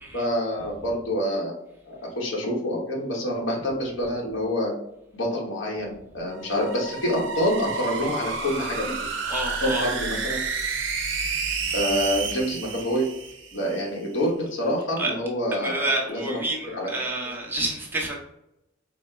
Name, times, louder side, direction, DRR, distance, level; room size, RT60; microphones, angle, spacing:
voice 1, 0.1-1.5 1.9-4.7 5.1-8.9 9.6-10.4 11.7-13.1 13.5-16.9, equal, 85° left, -2 dB, 1.1 m, -27 dB
sound 1, 6.3-13.8, right 5 dB, 70° right, 0.6 m, -30 dB
voice 2, 9.3-9.9 11.7-11.8 15.0-15.1 15.6-18.2, right 2 dB, 10° right, -3 dB, 0.9 m, -28 dB
4.1 x 2.1 x 4.3 m, 0.83 s
head